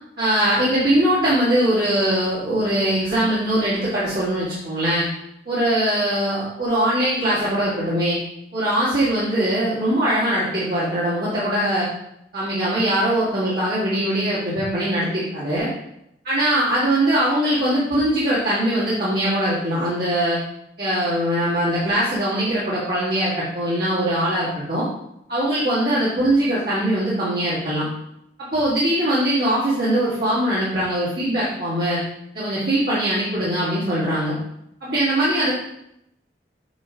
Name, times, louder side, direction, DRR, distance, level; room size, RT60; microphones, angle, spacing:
voice 1, 0.2-5.1 5.5-8.2 8.5-11.9 12.3-15.7 16.3-20.4 20.8-24.9 25.3-27.9 28.4-32.0 32.3-34.3 34.8-35.5, right 1 dB, 55° right, -11 dB, 2.0 m, -21 dB
8.0 x 3.2 x 3.8 m, 0.80 s
head